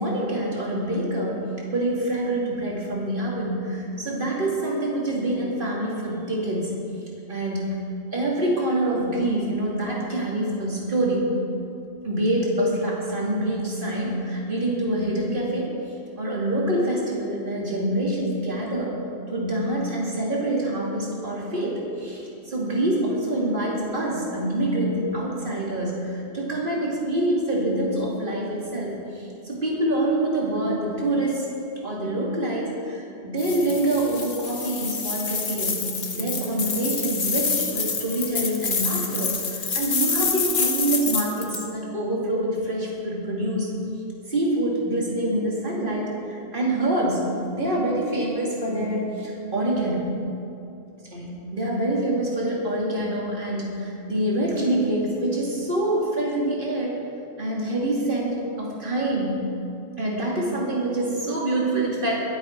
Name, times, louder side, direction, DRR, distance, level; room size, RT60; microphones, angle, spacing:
voice 1, 0.0-6.7 7.3-7.8 8.1-11.4 12.0-18.9 19.3-31.5 31.8-43.7 44.3-50.2 51.1-56.9 57.4-59.5 60.0-62.2, right 1 dB, 45° right, -4 dB, 2.8 m, -26 dB
sound 1, 33.4-41.6, left 5 dB, 45° left, 1.1 m, -27 dB
22.5 x 7.8 x 4.6 m, 2.7 s
omnidirectional pair, 1.2 m